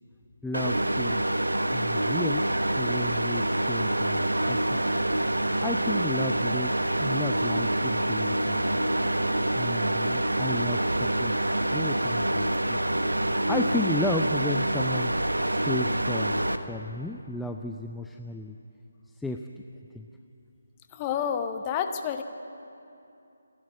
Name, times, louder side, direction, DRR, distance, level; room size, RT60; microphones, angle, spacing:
voice 1, 0.4-1.2 1.7-2.5 2.8-4.8 5.6-8.8 9.6-13.0 13.5-15.1 15.5-18.6 19.2-19.5 19.9-20.1, left 2 dB, 5° left, 4 dB, 0.4 m, -34 dB
sound 1, 0.5-16.6, right 1 dB, 80° right, 1.1 m, -26 dB
voice 2, 20.9-22.2, left 8 dB, 20° left, 7 dB, 1.0 m, -29 dB
27.0 x 11.5 x 8.5 m, 2.7 s
figure-of-eight pair, 150°, 0 cm